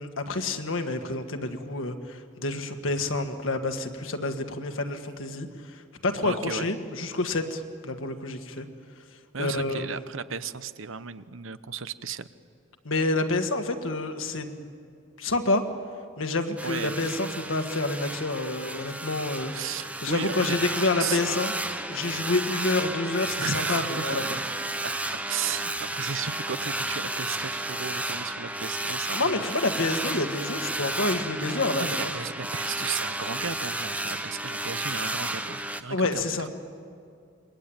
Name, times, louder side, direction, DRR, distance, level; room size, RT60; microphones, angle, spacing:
voice 1, 0.0-8.7 9.4-10.0 12.8-14.7 15.2-15.6 16.2-19.5 20.0-21.5 21.9-24.2 29.1-32.1 35.9-36.5, left 2 dB, 70° left, 6 dB, 1.8 m, -28 dB
voice 2, 6.2-6.7 9.3-12.3 16.6-17.0 19.5-20.5 21.0-21.2 23.4-24.4 24.8-24.9 25.3-29.4 31.3-36.5, right 6 dB, 70° right, 13 dB, 0.9 m, -35 dB
sound 1, 16.6-35.8, right 1 dB, 5° right, 0.8 m, -32 dB
27.5 x 23.0 x 8.9 m, 2.4 s
head